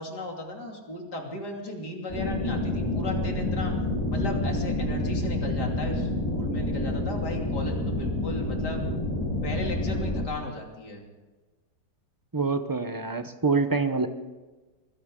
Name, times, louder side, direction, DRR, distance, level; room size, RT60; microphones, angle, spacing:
voice 1, 0.0-3.7 4.1-8.8 9.4-11.0, left 2 dB, 65° left, 1 dB, 3.5 m, -36 dB
sound 1, 2.1-10.2, left 1 dB, 15° left, 4.3 m, -28 dB
voice 2, 12.3-14.1, right 4 dB, 20° right, 9 dB, 0.5 m, -26 dB
23.0 x 16.5 x 3.8 m, 1.2 s
omnidirectional pair, 1.9 m